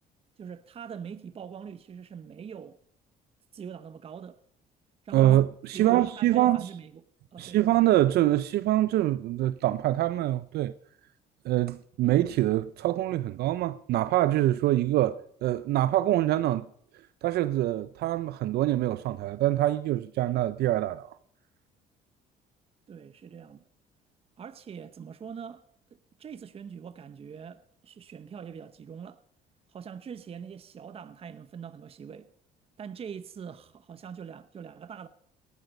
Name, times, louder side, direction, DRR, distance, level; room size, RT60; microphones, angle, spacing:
voice 1, 0.4-2.8 3.5-4.4 5.0-5.3 5.7-7.0 7.3-7.6 22.9-23.6 24.4-25.7 26.2-29.2 29.7-32.3 32.8-35.1, right 7 dB, 35° right, 0.8 m, -43 dB
voice 2, 5.1-6.6 7.4-10.7 11.4-16.7 17.2-21.1, right 14 dB, 70° right, 0.5 m, -25 dB
18.5 x 12.0 x 5.3 m
cardioid pair, 110°, 17 cm